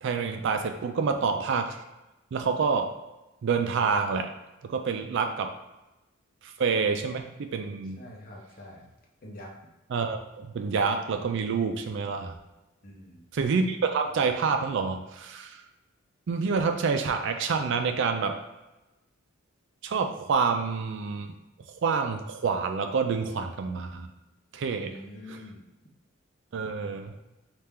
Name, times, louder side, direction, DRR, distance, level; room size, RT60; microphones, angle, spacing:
voice 1, 0.0-1.8 2.3-2.9 3.4-4.3 4.6-5.5 6.4-8.0 9.9-12.3 13.3-15.6 16.3-18.4 19.8-21.3 21.8-24.1 24.5-25.0 25.3-25.4 26.5-27.1, right 5 dB, 60° right, 6 dB, 0.4 m, -27 dB
voice 2, 8.0-8.9 9.2-9.5 12.8-13.2 24.8-25.6, left 1 dB, 45° left, -2 dB, 0.8 m, -45 dB
4.3 x 2.4 x 3.5 m, 1.0 s
head